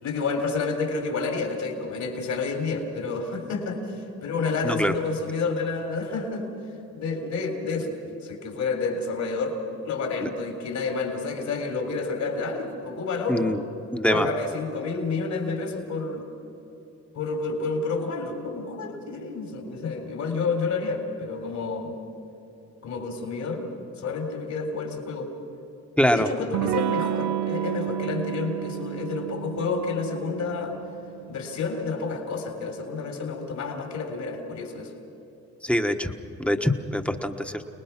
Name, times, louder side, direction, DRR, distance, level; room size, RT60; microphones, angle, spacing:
voice 1, 0.0-6.5 6.9-9.6 9.8-13.6 14.1-16.3 17.1-22.0 22.8-23.7 24.0-25.3 26.1-30.8 31.3-34.9, left 4 dB, 65° left, 3 dB, 3.9 m, -29 dB
voice 2, 13.9-14.3 26.0-26.3 35.6-36.1 36.4-37.6, equal, 5° left, 6 dB, 1.3 m, -23 dB
Electric guitar / Strum, 26.5-31.9, right 12 dB, 75° right, 0.7 m, -31 dB
29.0 x 20.0 x 6.0 m, 3.0 s
cardioid pair, 90°, 30 cm